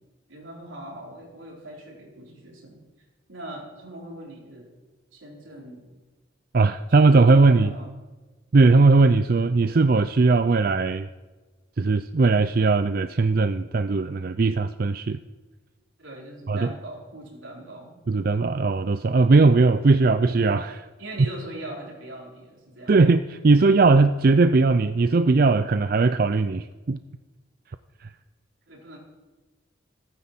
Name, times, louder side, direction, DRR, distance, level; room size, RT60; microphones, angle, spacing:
voice 1, 0.3-2.8 3.3-4.7 5.1-5.9 7.0-7.9 16.0-17.9 21.0-23.1 28.7-29.0, right 1 dB, 85° right, -2 dB, 4.5 m, -41 dB
voice 2, 6.5-7.7 8.5-11.1 11.8-15.2 16.5-16.7 18.1-20.9 22.9-27.0 28.0-28.1, right 3 dB, 50° right, 11 dB, 0.4 m, -19 dB
14.5 x 9.9 x 7.6 m, 1.2 s
head